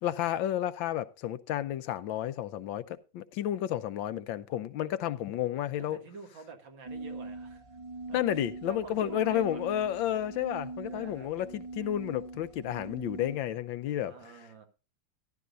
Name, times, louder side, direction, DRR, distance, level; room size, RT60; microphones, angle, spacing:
voice 1, 0.0-6.0 8.1-14.1, left 11 dB, 80° left, 1.4 m, -31 dB
voice 2, 5.9-7.8 8.1-8.2 8.7-9.6 10.9-11.3 14.1-14.7, right 5 dB, 75° right, 2.6 m, -47 dB
sound 1, 6.8-13.4, right 3 dB, 55° right, 0.3 m, -42 dB
13.5 x 12.0 x 2.6 m
omnidirectional pair, 2.1 m